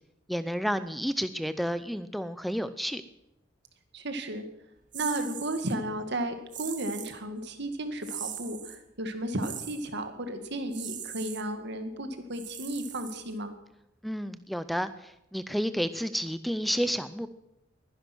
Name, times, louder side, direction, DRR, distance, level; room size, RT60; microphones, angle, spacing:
voice 1, 0.3-3.0 14.0-17.3, equal, ahead, 13 dB, 0.5 m, -31 dB
voice 2, 3.9-4.4 4.9-13.5, right 1 dB, 65° right, 8 dB, 2.1 m, -34 dB
sound 1, 4.9-5.8 6.5-7.2 8.0-8.8 9.4-9.9 10.7-11.4 12.3-13.5, right 10 dB, 45° right, 1.4 m, -40 dB
21.0 x 10.5 x 6.2 m, 0.88 s
head